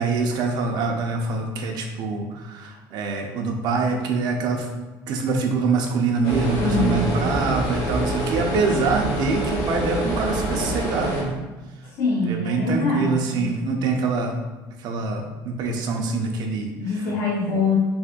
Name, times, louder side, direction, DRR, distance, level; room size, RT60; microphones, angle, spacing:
voice 1, 0.0-4.7 5.1-11.4 12.2-14.4 14.8-16.7 17.5-17.6, right 4 dB, 60° right, 2 dB, 0.8 m, -24 dB
sound 1, 6.2-11.2, right 1 dB, 90° left, 1.4 m, -26 dB
voice 2, 6.6-7.2 11.9-13.5 16.8-17.8, left 3 dB, 70° left, -6 dB, 1.1 m, -24 dB
5.7 x 3.5 x 2.5 m, 1.2 s
cardioid pair, 135°, 8 cm